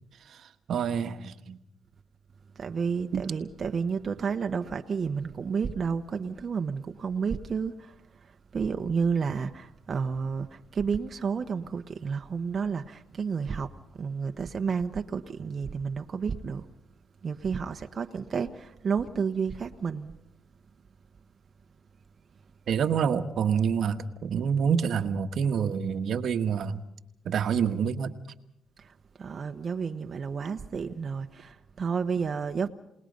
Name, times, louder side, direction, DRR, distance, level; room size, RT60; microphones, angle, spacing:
voice 1, 0.7-1.6 3.1-3.3 22.7-26.8 27.2-28.1, right 7 dB, 65° right, 1.3 m, -27 dB
voice 2, 2.6-7.9 8.5-13.7 14.0-16.6 17.2-20.1 29.2-32.7, right 5 dB, 45° right, 1.1 m, -31 dB
30.0 x 19.5 x 5.3 m
cardioid pair, 90°, 0 cm